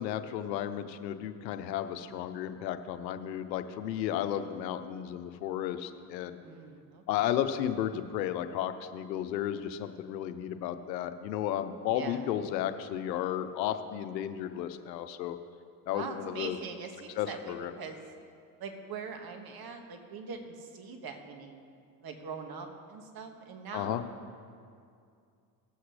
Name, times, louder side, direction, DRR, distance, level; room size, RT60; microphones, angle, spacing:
voice 1, 0.0-6.4 7.1-15.4 15.9-16.6 17.2-17.7 23.7-24.0, left 10 dB, 85° left, 10 dB, 0.8 m, -33 dB
voice 2, 6.4-7.4 11.9-12.3 15.9-18.0 18.6-21.6 22.0-24.1, right 5 dB, 45° right, 4 dB, 1.8 m, -42 dB
19.5 x 7.9 x 3.3 m, 2.4 s
hypercardioid pair, 70°, 49 cm